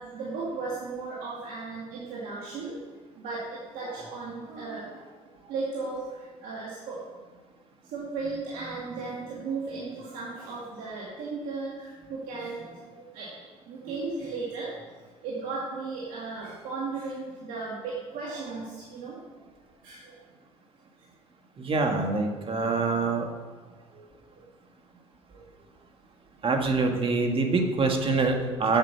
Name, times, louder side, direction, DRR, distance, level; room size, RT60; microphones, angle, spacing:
voice 1, 0.0-2.8 3.2-5.1 5.3-7.0 7.9-13.4 13.7-14.8 15.2-19.4 19.8-20.2 21.9-22.0 23.9-24.5 25.3-25.4, right 3 dB, 75° right, -6 dB, 2.3 m, -36 dB
voice 2, 21.6-23.3 26.4-28.8, right 3 dB, 40° right, 4 dB, 1.7 m, -25 dB
8.2 x 6.6 x 6.9 m, 1.4 s
supercardioid pair, 80°, 14 cm